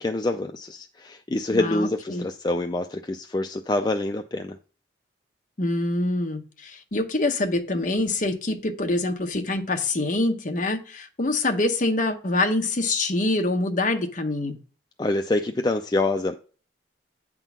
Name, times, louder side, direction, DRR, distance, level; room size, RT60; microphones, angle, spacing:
voice 1, 0.0-4.6 15.0-16.4, left 2 dB, 20° left, 0.4 m, -26 dB
voice 2, 1.5-2.2 5.6-14.6, left 2 dB, 45° left, 0.9 m, -25 dB
9.0 x 3.8 x 6.0 m
head